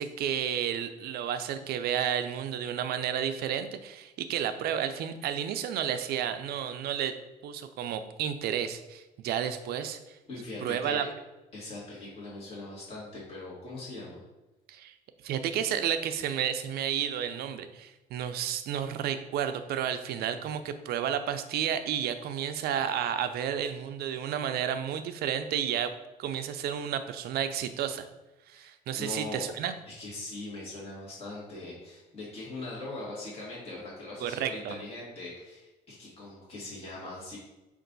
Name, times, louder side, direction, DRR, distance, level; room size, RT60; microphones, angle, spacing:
voice 1, 0.0-7.1 7.4-10.2 10.6-11.0 14.7-14.9 15.2-25.9 26.2-28.0 28.5-29.7 34.2-34.8, right 9 dB, 70° right, 9 dB, 0.4 m, -31 dB
voice 2, 10.3-11.0 11.5-14.2 28.5-29.5 29.9-37.4, left 2 dB, 35° left, -6 dB, 1.6 m, -41 dB
5.3 x 2.5 x 3.9 m, 1.0 s
cardioid pair, 110°, 17 cm